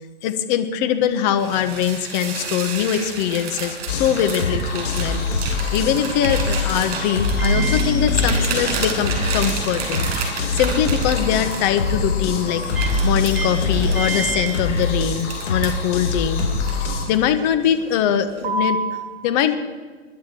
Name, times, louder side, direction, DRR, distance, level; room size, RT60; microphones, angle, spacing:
voice 1, 0.2-12.7 13.0-16.5 17.1-18.8 19.2-19.6, left 9 dB, 40° left, 8 dB, 1.5 m, -22 dB
sound 1, 1.4-12.1 12.6-15.9 16.4-17.3 17.6-17.9 18.4-18.9, right 4 dB, 50° right, 6.5 m, -30 dB
sound 2, 3.9-17.1, left 3 dB, 80° left, 4.9 m, -24 dB
Microwave oven, 7.3-15.5, equal, 5° right, 2.7 m, -31 dB
24.0 x 11.5 x 4.7 m, 1.4 s
hypercardioid pair, 130°, 36 cm